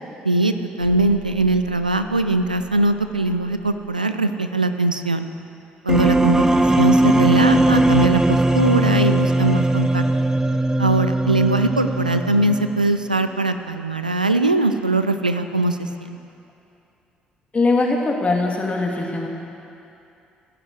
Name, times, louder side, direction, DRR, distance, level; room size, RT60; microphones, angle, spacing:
voice 1, 0.2-5.3 5.8-10.0 10.8-16.2, right 2 dB, 90° right, 9 dB, 0.5 m, -21 dB
sound 1, 0.8-3.9, right 5 dB, 65° left, 4.4 m, -44 dB
sound 2, 5.9-12.9, right 1 dB, 10° right, 0.9 m, -19 dB
voice 2, 17.5-19.3, left 3 dB, 30° left, 0 dB, 2.5 m, -21 dB
16.0 x 10.5 x 8.2 m, 2.7 s
figure-of-eight pair, 45°, 4 cm